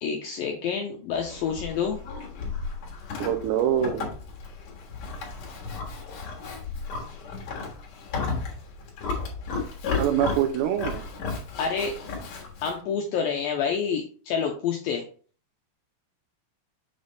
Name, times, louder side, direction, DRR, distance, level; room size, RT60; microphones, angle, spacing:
voice 1, 0.0-2.0 11.6-12.0 12.6-15.0, left 6 dB, 85° left, 1 dB, 2.1 m, -28 dB
Livestock farm animals working animals, 1.1-12.8, left 4 dB, 55° left, 2.2 m, -34 dB
voice 2, 3.2-4.1 10.0-11.0, right 10 dB, 85° right, 8 dB, 2.9 m, -24 dB
7.2 x 3.4 x 4.0 m, 0.42 s
omnidirectional pair, 4.9 m